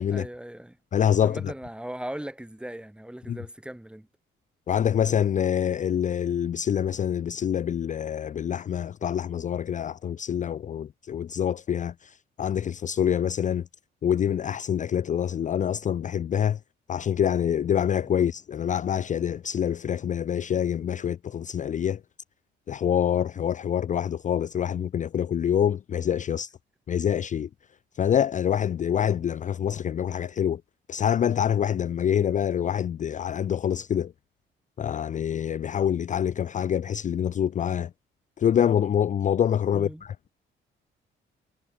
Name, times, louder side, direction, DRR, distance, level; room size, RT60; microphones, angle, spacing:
voice 1, 0.1-0.8 1.2-4.1 18.0-18.3 39.7-40.0, right 1 dB, 5° right, 3.5 m, -39 dB
voice 2, 0.9-1.5 3.3-3.4 4.7-13.6 14.0-16.6 16.9-22.0 22.7-26.5 26.9-27.5 28.0-30.6 30.9-34.1 34.8-37.9 38.4-39.9, left 9 dB, 40° left, 0.4 m, -26 dB
cardioid pair, 90°, 20 cm